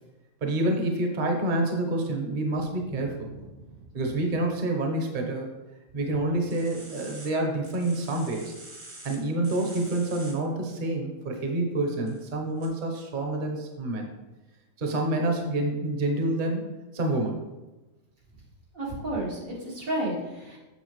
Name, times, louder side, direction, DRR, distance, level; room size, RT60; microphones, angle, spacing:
voice 1, 0.4-3.3 3.9-5.5 5.9-8.5 9.0-14.1 14.8-16.6 16.9-17.4, right 2 dB, 40° right, 2 dB, 1.0 m, -28 dB
sound 1, 6.5-7.3 7.6-9.2 9.4-10.3 12.1-12.3 12.6-12.7, right 2 dB, 65° right, 2.0 m, -46 dB
voice 2, 18.7-20.6, right 1 dB, 85° right, -6 dB, 2.4 m, -32 dB
7.1 x 6.4 x 3.1 m, 1.1 s
omnidirectional pair, 1.4 m